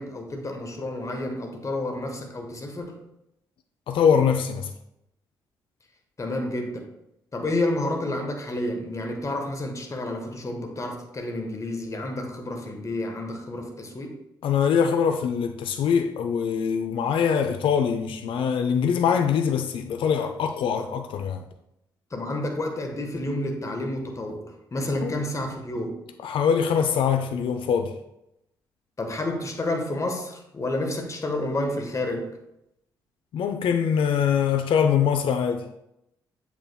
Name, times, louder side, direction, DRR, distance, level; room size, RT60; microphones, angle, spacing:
voice 1, 0.0-3.0 6.2-6.9 7.3-14.2 22.1-26.0 29.0-32.3, left 1 dB, 30° left, 3 dB, 1.3 m, -30 dB
voice 2, 3.9-4.7 14.4-21.4 25.0-25.1 26.2-27.9 33.3-35.6, left 7 dB, 50° left, 7 dB, 0.5 m, -23 dB
7.6 x 7.0 x 2.3 m, 0.83 s
figure-of-eight pair, 45°, 11 cm